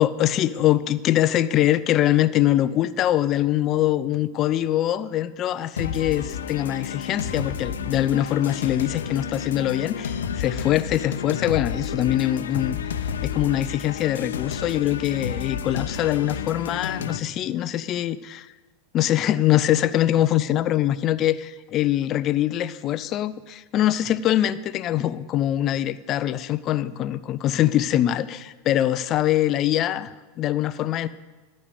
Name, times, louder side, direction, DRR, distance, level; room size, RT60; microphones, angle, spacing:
voice 1, 0.0-12.8 13.2-18.5 18.9-31.1, left 12 dB, 40° left, 14 dB, 0.4 m, -23 dB
sound 1, 5.8-17.2, left 7 dB, 70° left, 0.7 m, -31 dB
13.5 x 5.4 x 8.2 m, 1.2 s
figure-of-eight pair, 85°, 0 cm